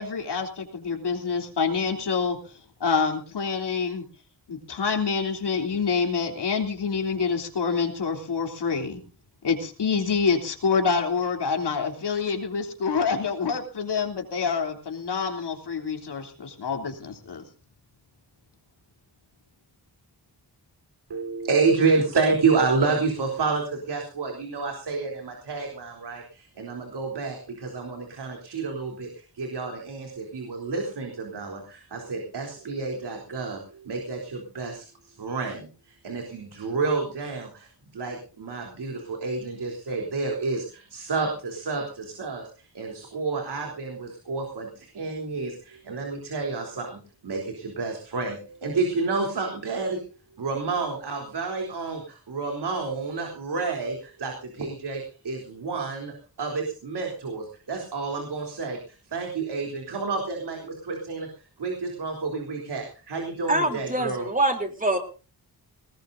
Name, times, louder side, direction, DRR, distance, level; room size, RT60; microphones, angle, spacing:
voice 1, 0.0-2.4 2.8-4.0 4.5-9.0 9.4-17.4, left 5 dB, 90° left, 3 dB, 3.4 m, -27 dB
voice 2, 21.1-50.0 50.4-61.3 61.6-64.3, right 4 dB, 90° right, 1 dB, 3.7 m, -29 dB
voice 3, 63.5-65.0, right 1 dB, 20° right, 5 dB, 3.5 m, -24 dB
20.0 x 19.0 x 2.7 m, 0.36 s
wide cardioid pair, 90°, 39 cm